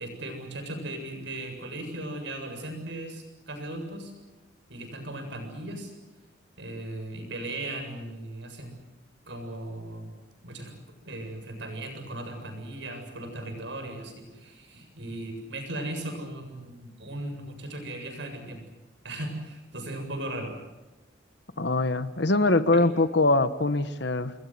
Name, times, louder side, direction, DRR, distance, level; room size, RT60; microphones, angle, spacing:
voice 1, 0.0-4.1 4.7-5.9 6.6-8.7 9.3-10.1 10.4-10.7 11.0-18.6 19.0-20.5 22.7-22.8, right 1 dB, 65° right, 5 dB, 7.6 m, -37 dB
voice 2, 21.6-24.3, left 2 dB, 55° left, 12 dB, 1.2 m, -23 dB
29.5 x 21.5 x 7.8 m, 1.1 s
head